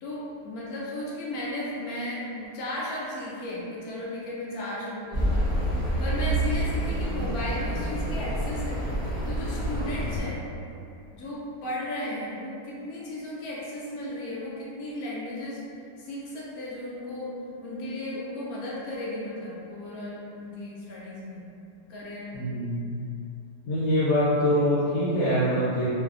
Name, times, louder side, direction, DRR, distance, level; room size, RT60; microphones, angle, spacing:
voice 1, 0.0-5.6 6.0-8.8 9.2-10.4 11.1-15.6 16.0-17.3 17.6-21.5 21.9-22.5, left 1 dB, 70° left, -6 dB, 0.9 m, -35 dB
Accelerating revving vroom, 5.1-10.2, right 1 dB, 40° right, 0.4 m, -28 dB
voice 2, 22.3-22.9 23.7-25.9, equal, 90° left, -10 dB, 1.4 m, -24 dB
3.1 x 2.1 x 2.4 m, 2.7 s
omnidirectional pair, 1.9 m